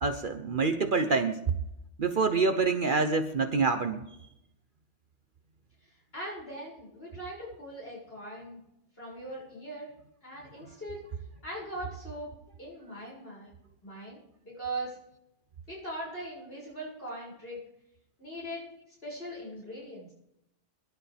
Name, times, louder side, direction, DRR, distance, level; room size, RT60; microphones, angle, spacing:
voice 1, 0.0-1.4 2.0-4.2, right 4 dB, 50° right, 8 dB, 0.9 m, -26 dB
voice 2, 6.1-8.6 9.0-9.9 10.2-11.0 11.4-12.3 12.6-13.5 13.8-15.0 15.7-17.6 18.2-18.7 19.0-20.1, right 1 dB, 50° left, -4 dB, 6.8 m, -40 dB
23.0 x 11.5 x 3.5 m, 0.81 s
omnidirectional pair, 1.2 m